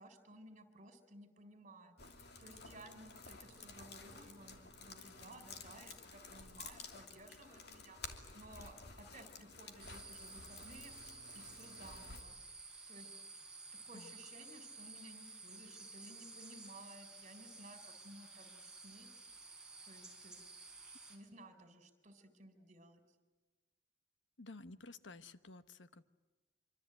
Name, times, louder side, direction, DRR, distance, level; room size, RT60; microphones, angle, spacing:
voice 1, 0.0-1.9 2.4-12.4 12.9-13.2 13.8-19.1 19.8-20.4 21.1-23.0, right 1 dB, 40° right, 8 dB, 4.0 m, -57 dB
sound 1, 2.0-12.2, left 4 dB, 60° left, 2.9 m, -53 dB
sound 2, 9.8-21.2, right 3 dB, 5° right, 4.9 m, -53 dB
voice 2, 24.4-26.0, left 3 dB, 85° left, 12 dB, 1.1 m, -53 dB
25.5 x 25.0 x 9.0 m, 1.2 s
head